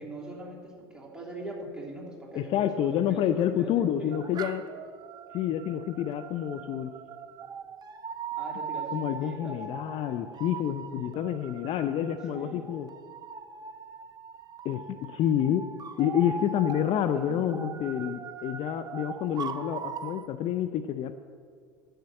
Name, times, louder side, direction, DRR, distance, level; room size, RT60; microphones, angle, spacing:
voice 1, 0.0-4.2 8.4-9.6 9.9-10.1 12.3-12.7 17.4-17.8, right 1 dB, 5° right, -3 dB, 3.2 m, -41 dB
voice 2, 2.3-4.6 5.3-6.9 8.9-12.9 14.6-15.7 16.0-21.1, left 10 dB, 45° left, 9 dB, 0.6 m, -28 dB
sound 1, 4.1-20.3, right 6 dB, 30° right, 0.7 m, -40 dB
11.5 x 6.8 x 7.6 m, 2.1 s
hypercardioid pair, 75°, 13 cm